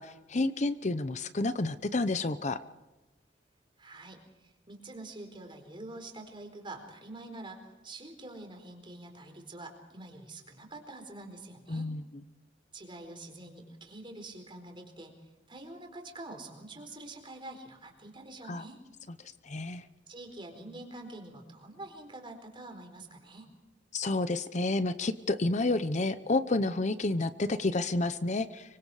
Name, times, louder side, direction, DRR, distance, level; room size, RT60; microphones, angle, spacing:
voice 1, 0.0-2.6 11.7-12.0 18.5-18.6 19.4-19.8 23.9-28.8, left 2 dB, 40° left, 12 dB, 0.8 m, -30 dB
voice 2, 3.8-11.9 12.7-18.8 20.1-23.5, right 2 dB, 25° right, 4 dB, 4.3 m, -46 dB
25.5 x 24.5 x 4.9 m, 1.1 s
head